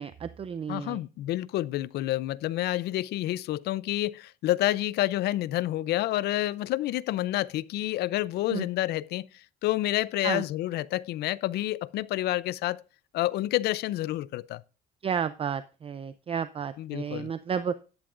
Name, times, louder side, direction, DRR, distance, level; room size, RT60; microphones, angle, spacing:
voice 1, 0.0-1.0 8.5-8.7 10.2-10.4 15.0-17.7, right 7 dB, 35° right, 0.5 m, -32 dB
voice 2, 0.7-12.8 13.1-14.6 16.8-17.3, left 15 dB, 75° left, 0.5 m, -29 dB
12.0 x 10.5 x 2.5 m
cardioid pair, 110°, 17 cm